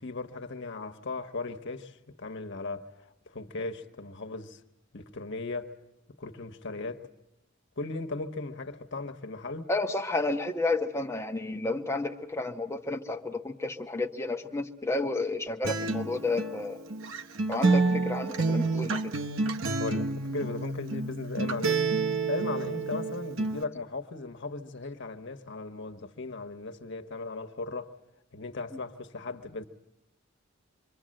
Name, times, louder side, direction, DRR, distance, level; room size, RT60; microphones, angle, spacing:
voice 1, 0.0-4.6 4.9-5.8 6.2-7.1 7.8-9.7 19.8-21.8 22.3-27.9 28.3-29.6, left 3 dB, 65° left, 1.3 m, -37 dB
voice 2, 9.7-16.8 17.5-19.1, left 2 dB, 15° left, 1.3 m, -31 dB
Acoustic guitar, 15.6-23.6, right 3 dB, 90° right, 1.0 m, -29 dB
26.5 x 23.5 x 7.7 m
head